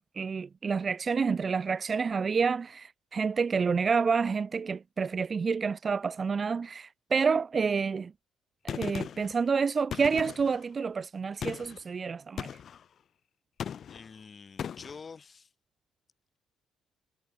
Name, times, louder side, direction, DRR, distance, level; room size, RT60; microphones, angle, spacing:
voice 1, 0.0-8.1 8.6-12.5, right 5 dB, 35° right, 0.3 m, -29 dB
Gunshot gunfire, 8.7-9.3 9.9-10.6 11.4-11.8 12.4-12.8 13.6-14.1 14.6-15.0, left 8 dB, 50° left, 0.3 m, -38 dB
voice 2, 13.9-15.5, left 5 dB, 30° left, 5.2 m, -47 dB
cardioid pair, 115°, 0 cm